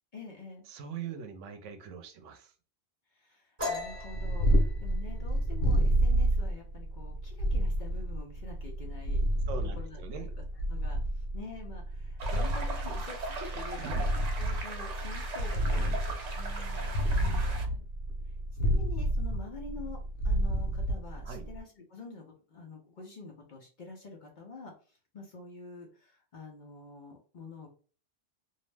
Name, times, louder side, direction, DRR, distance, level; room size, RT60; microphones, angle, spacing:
voice 1, 0.1-0.6 3.1-9.2 9.6-10.2 10.7-16.0 16.4-17.9 18.6-27.7, left 3 dB, 50° left, 0 dB, 0.6 m, -47 dB
voice 2, 0.7-2.5 9.5-10.3 13.8-14.1 15.7-16.2 21.2-21.4, right 7 dB, 85° right, 7 dB, 0.9 m, -42 dB
sound 1, 3.6-7.0 7.4-7.7 8.1-8.6 8.8-9.6, left 2 dB, 25° right, 1.0 m, -40 dB
Purr, 3.9-21.6, right 1 dB, 75° left, 1.1 m, -29 dB
sound 2, 12.2-17.7, right 3 dB, 55° right, 0.4 m, -40 dB
2.6 x 2.0 x 3.2 m, 0.40 s
omnidirectional pair, 1.2 m